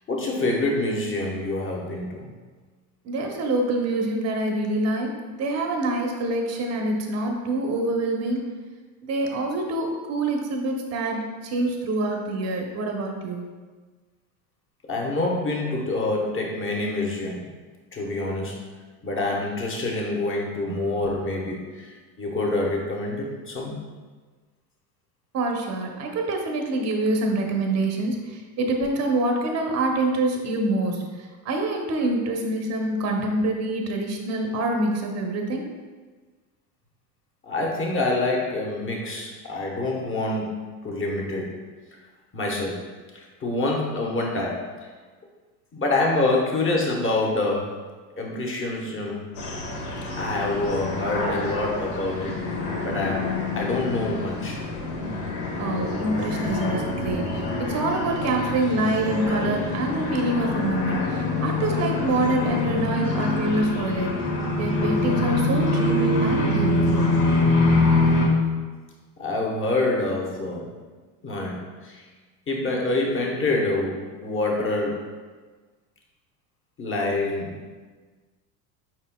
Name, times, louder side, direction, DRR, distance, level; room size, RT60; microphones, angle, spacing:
voice 1, 0.1-2.3 14.9-17.5 17.9-18.6 19.0-23.8 37.4-41.5 42.3-42.8 43.1-44.9 45.7-47.8 48.2-49.3 50.1-52.4 52.8-54.6 69.2-70.7 71.2-72.0 72.5-75.0 76.8-77.5, left 2 dB, 25° left, -1 dB, 1.0 m, -26 dB
voice 2, 3.0-8.5 9.0-13.5 20.7-20.8 25.3-35.7 55.6-64.2 64.6-67.2, right 2 dB, 35° right, 2 dB, 0.8 m, -26 dB
sound 1, 49.4-68.3, left 2 dB, 65° left, 1.2 m, -25 dB
5.0 x 4.3 x 2.2 m, 1.4 s
hypercardioid pair, 90°, 49 cm